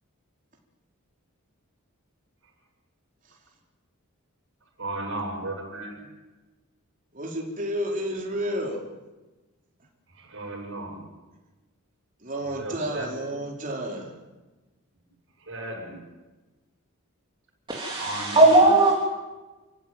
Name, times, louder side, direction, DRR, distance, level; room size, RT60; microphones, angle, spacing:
voice 1, 4.8-6.0 10.2-11.0 12.6-13.1 15.5-15.9 18.0-18.4, right 2 dB, 60° right, 0 dB, 7.7 m, -35 dB
voice 2, 7.1-8.8 12.2-14.1, equal, 40° right, -1 dB, 4.6 m, -31 dB
voice 3, 17.7-18.9, right 2 dB, 20° right, -3 dB, 3.5 m, -18 dB
29.0 x 15.0 x 9.3 m, 1.2 s
head